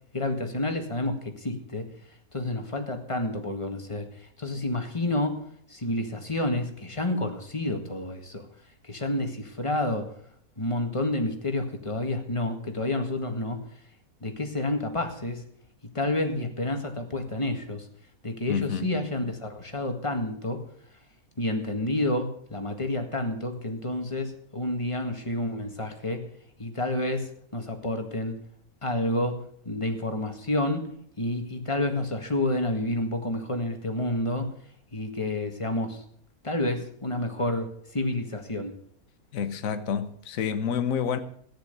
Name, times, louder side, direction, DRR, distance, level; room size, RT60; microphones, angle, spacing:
voice 1, 0.1-1.8 2.3-4.1 4.4-5.4 5.7-8.5 8.9-10.1 10.6-13.6 14.2-15.4 16.0-17.8 18.2-20.6 21.4-26.2 26.6-28.3 28.8-29.4 29.7-30.9 31.2-34.5 34.9-36.0 36.4-38.7, left 1 dB, 20° left, 1.8 m, -29 dB
voice 2, 18.5-18.9 39.3-41.2, left 7 dB, 65° left, 1.4 m, -28 dB
14.0 x 10.5 x 6.8 m
omnidirectional pair, 1.6 m